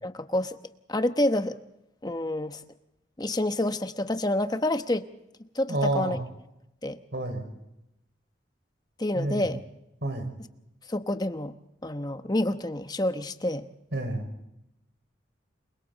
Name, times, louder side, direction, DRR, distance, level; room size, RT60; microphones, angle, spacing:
voice 1, 0.0-0.6 0.9-1.6 2.0-2.6 3.2-5.1 5.5-6.2 6.8-7.0 9.0-9.6 10.9-11.6 11.8-13.7, left 1 dB, 20° left, 9 dB, 1.0 m, -28 dB
voice 2, 5.7-6.2 7.1-7.5 9.1-9.5 10.0-10.3 13.9-14.3, right 2 dB, 65° right, 6 dB, 5.2 m, -29 dB
29.0 x 23.0 x 4.1 m, 0.87 s
head